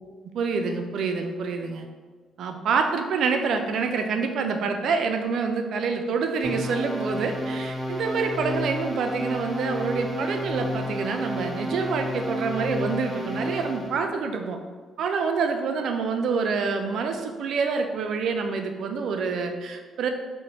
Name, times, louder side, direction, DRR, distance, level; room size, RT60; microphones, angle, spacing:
voice 1, 0.3-1.9 2.4-14.6 15.0-20.1, right 5 dB, 65° right, 5 dB, 0.3 m, -27 dB
sound 1, 6.4-14.0, left 1 dB, 5° right, 0.9 m, -31 dB
4.0 x 2.1 x 2.8 m, 1.5 s
hypercardioid pair, 50°, 0 cm